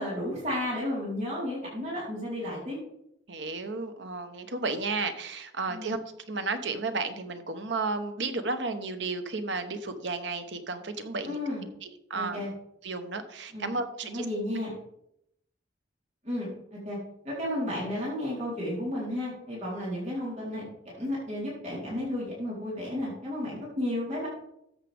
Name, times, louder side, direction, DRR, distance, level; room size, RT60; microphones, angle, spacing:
voice 1, 0.0-2.8 5.7-5.9 11.3-11.6 12.1-12.5 13.5-13.7 14.0-14.7 16.2-17.0 17.2-20.7 21.0-24.3, left 1 dB, 40° right, -6 dB, 4.2 m, -33 dB
voice 2, 3.3-6.0 6.3-11.4 11.8-12.4 12.8-14.3, right 3 dB, 75° right, 8 dB, 1.1 m, -33 dB
14.0 x 7.5 x 3.6 m, 0.77 s
head